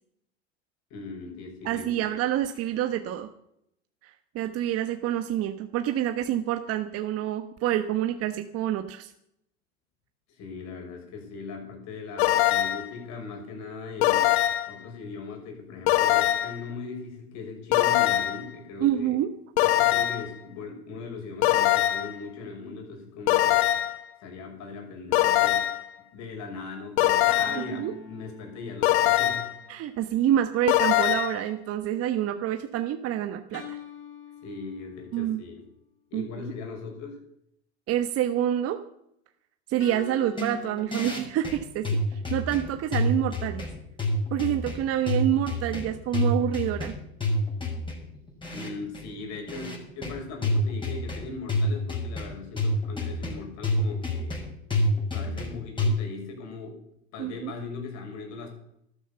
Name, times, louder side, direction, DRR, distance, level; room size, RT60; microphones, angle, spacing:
voice 1, 0.9-2.1 10.3-14.4 14.7-19.2 19.6-23.7 24.2-25.6 26.1-29.5 34.4-35.7 36.1-37.2 48.5-54.3 55.1-56.8 57.1-58.5, left 4 dB, 55° left, 3 dB, 6.3 m, -39 dB
voice 2, 1.6-3.3 4.0-9.1 18.8-19.3 27.6-27.9 29.7-33.8 35.1-35.4 36.1-36.3 37.9-38.8 39.7-43.6 44.3-46.9 57.2-57.5, right 11 dB, 45° right, 8 dB, 1.2 m, -27 dB
sound 1, 12.2-12.9 14.0-14.8 15.9-16.6 17.7-18.5 19.6-20.3 21.4-22.2 23.3-24.0 25.1-25.9 27.0-27.7 28.8-29.6 30.7-31.4, left 14 dB, 70° left, 1.3 m, -22 dB
sound 2, 27.3-29.8 33.5-35.3 39.8-41.2, left 6 dB, 35° left, 3.5 m, -45 dB
sound 3, 40.3-55.9, left 1 dB, 15° left, 6.0 m, -28 dB
13.0 x 12.0 x 7.0 m, 0.74 s
hypercardioid pair, 100°, 33 cm